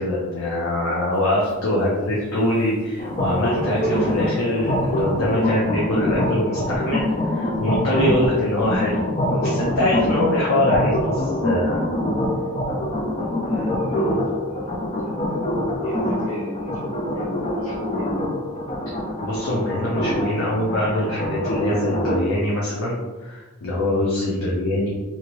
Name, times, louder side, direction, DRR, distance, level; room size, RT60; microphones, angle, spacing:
voice 1, 0.0-11.8 19.2-24.9, left 1 dB, 80° left, -5 dB, 0.7 m, -23 dB
sound 1, 1.1-9.5, right 1 dB, 50° right, 0.6 m, -38 dB
voice 2, 1.3-2.2 13.2-18.1 24.2-24.6, left 1 dB, 65° left, -11 dB, 1.2 m, -36 dB
sound 2, 3.0-22.2, left 1 dB, 30° left, 0.4 m, -25 dB
2.8 x 2.5 x 3.0 m, 1.2 s
head